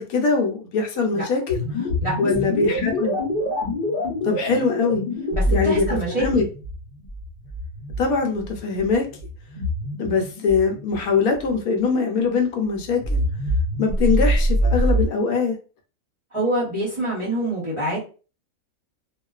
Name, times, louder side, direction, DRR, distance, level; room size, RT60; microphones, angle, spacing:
voice 1, 0.0-1.6 2.2-3.2 4.2-5.0 5.5-6.4 8.0-9.1 10.0-13.2 13.8-15.6, left 4 dB, 75° left, 3 dB, 1.0 m, -22 dB
sound 1, 1.5-11.6 12.9-15.1, equal, 45° left, 0.8 m, -25 dB
voice 2, 5.3-6.3 16.3-18.0, right 1 dB, 30° right, -6 dB, 0.6 m, -25 dB
2.3 x 2.3 x 2.3 m, 0.35 s
omnidirectional pair, 1.6 m